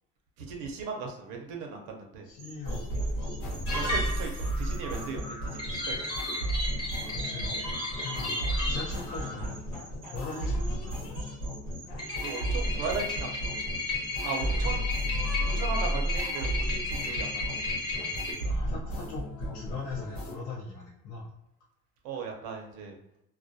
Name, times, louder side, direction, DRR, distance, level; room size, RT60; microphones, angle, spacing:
voice 1, 0.4-2.3 3.7-6.0 12.2-13.7 14.2-14.9 15.4-17.6 22.0-23.0, right 4 dB, 85° right, 1 dB, 0.6 m, -37 dB
voice 2, 2.2-3.0 3.3-4.0 5.1-5.2 6.7-7.6 8.0-8.4 8.7-9.8 10.1-11.2 14.6-14.8 15.0-15.2 17.9-21.3, left 4 dB, 55° left, -6 dB, 0.6 m, -41 dB
sound 1, 2.3-18.5, right 4 dB, 30° right, 0.4 m, -51 dB
sound 2, 2.6-20.3, equal, 90° left, 1.0 m, -33 dB
sound 3, 3.7-4.5 5.6-9.0 12.0-18.3, left 2 dB, 15° left, 0.9 m, -34 dB
2.3 x 2.1 x 2.6 m, 0.85 s
cardioid pair, 150°, 29 cm